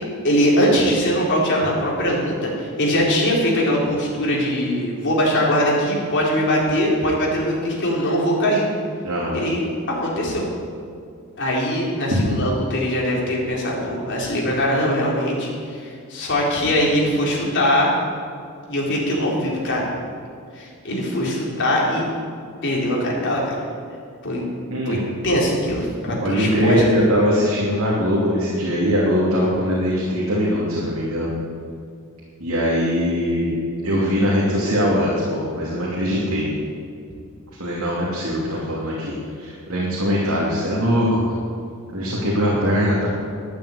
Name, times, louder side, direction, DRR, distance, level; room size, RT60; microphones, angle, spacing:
voice 1, 0.2-8.7 9.3-10.5 11.4-17.9 18.7-19.9 20.6-22.0 22.6-23.5 24.2-24.4 24.9-26.8, equal, 55° left, -4 dB, 4.0 m, -21 dB
voice 2, 9.0-9.4 12.1-12.2 24.7-25.0 26.2-31.3 32.4-33.6 33.8-36.5 37.6-41.2 41.9-43.1, equal, 70° right, -6 dB, 3.0 m, -21 dB
13.0 x 9.2 x 8.5 m, 2.4 s
head